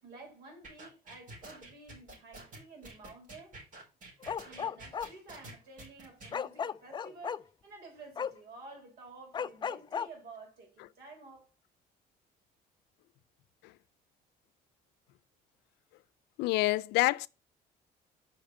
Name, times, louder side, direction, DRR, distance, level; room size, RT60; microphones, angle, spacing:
voice 1, 0.0-3.6 4.4-11.5, right 3 dB, 70° right, 4.0 m, -51 dB
sound 1, 0.6-6.3, right 2 dB, 50° right, 4.6 m, -49 dB
Bark, 4.2-5.1 6.3-7.4 8.2-8.3 9.3-10.1, left 7 dB, 25° left, 0.4 m, -34 dB
voice 2, 16.4-17.3, left 19 dB, 90° left, 0.5 m, -27 dB
5.7 x 5.1 x 6.4 m
cardioid pair, 110°, 17 cm